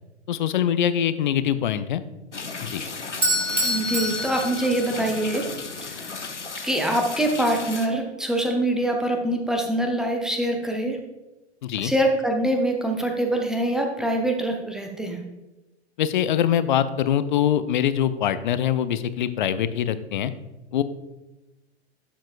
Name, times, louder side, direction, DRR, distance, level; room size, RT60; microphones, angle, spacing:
voice 1, 0.3-2.0 2.6-2.8 11.6-11.9 16.0-20.3 20.7-20.8, left 10 dB, 45° left, 13 dB, 0.6 m, -23 dB
sound 1, 2.3-7.9, left 4 dB, 85° left, 0.9 m, -35 dB
Bell / Doorbell, 3.2-5.3, equal, 85° right, 1.8 m, -26 dB
voice 2, 3.6-5.4 5.8-6.2 6.6-11.0 11.8-15.2, right 1 dB, ahead, 2 dB, 0.6 m, -24 dB
11.5 x 7.4 x 2.4 m, 1.0 s
figure-of-eight pair, 105°, 34 cm